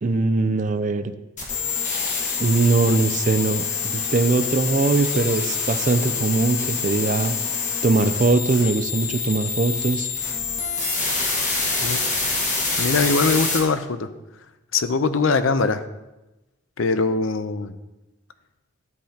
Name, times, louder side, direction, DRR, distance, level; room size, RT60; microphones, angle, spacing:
voice 1, 0.0-1.1 2.4-7.4 7.8-10.1, right 3 dB, 40° right, 10 dB, 0.4 m, -21 dB
sound 1, 1.4-13.6, left 4 dB, 35° left, 1.5 m, -26 dB
voice 2, 12.8-14.1 14.7-15.8 16.8-17.7, left 4 dB, 85° left, 11 dB, 0.6 m, -21 dB
12.0 x 7.7 x 2.8 m, 1.0 s
head